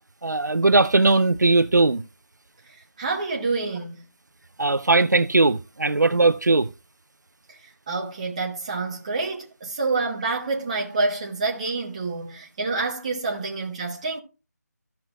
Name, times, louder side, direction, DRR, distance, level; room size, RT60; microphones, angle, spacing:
voice 1, 0.2-2.0 4.6-6.7, right 3 dB, 80° right, 0.6 m, -19 dB
voice 2, 3.0-4.0 7.9-14.2, right 3 dB, 25° right, 1.1 m, -27 dB
14.5 x 6.2 x 2.4 m
figure-of-eight pair, 160°, 9 cm